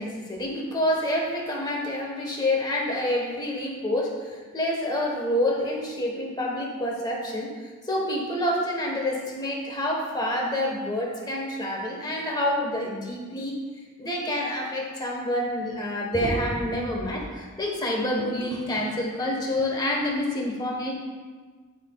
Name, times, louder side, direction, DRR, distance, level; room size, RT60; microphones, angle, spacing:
voice 1, 0.0-7.5 7.8-13.6 14.0-20.9, left 1 dB, 20° left, -1 dB, 1.3 m, -27 dB
12.0 x 5.8 x 2.4 m, 1.4 s
head